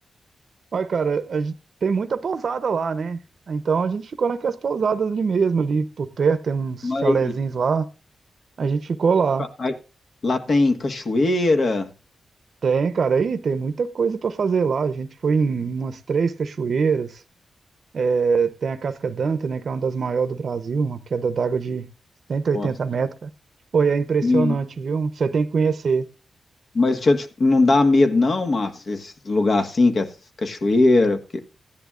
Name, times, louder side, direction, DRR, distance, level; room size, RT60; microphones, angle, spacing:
voice 1, 0.7-1.5 1.8-3.2 3.5-7.8 8.6-9.5 12.6-17.2 17.9-21.9 22.3-23.3 23.7-26.0, right 5 dB, 65° right, 0.8 m, -23 dB
voice 2, 6.8-7.3 9.6-9.7 10.2-11.9 22.5-22.7 24.2-24.5 26.7-30.1 30.4-31.4, left 2 dB, 55° left, 1.5 m, -20 dB
15.5 x 10.5 x 2.5 m
cardioid pair, 65°, 0 cm